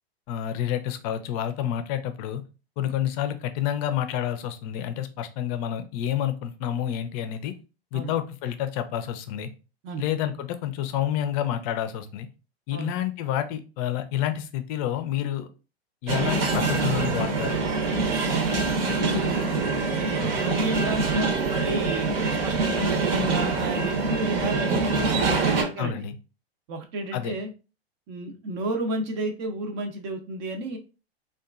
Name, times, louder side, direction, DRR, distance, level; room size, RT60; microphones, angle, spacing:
voice 1, 0.3-2.4 2.8-7.5 7.9-9.5 10.0-12.3 12.7-15.5 16.0-17.7 20.2-20.4 25.8-26.1 27.1-27.3, left 11 dB, 40° left, 9 dB, 0.4 m, -29 dB
sound 1, 16.1-25.6, right 4 dB, 65° right, 0.9 m, -25 dB
voice 2, 19.0-19.5 19.8-26.0 26.7-27.5 28.1-30.8, right 1 dB, 45° right, 5 dB, 0.6 m, -32 dB
2.8 x 2.3 x 2.3 m, 0.32 s
hypercardioid pair, 120°, 32 cm